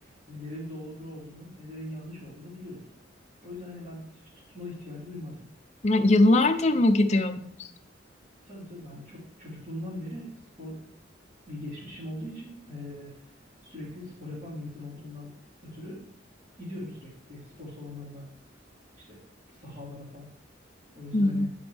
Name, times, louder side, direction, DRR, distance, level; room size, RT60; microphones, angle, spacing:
voice 1, 0.0-2.8 3.4-4.0 4.5-5.4 6.7-6.8 8.4-10.3 10.6-10.8 11.5-13.1 13.6-15.3 15.6-16.1 16.6-18.3 18.9-19.2 19.5-20.3 20.9-21.5, left 1 dB, 35° right, -11 dB, 3.2 m, -40 dB
voice 2, 5.8-7.7 21.1-21.5, left 2 dB, 35° left, 7 dB, 0.6 m, -21 dB
9.8 x 5.1 x 3.4 m, 0.67 s
head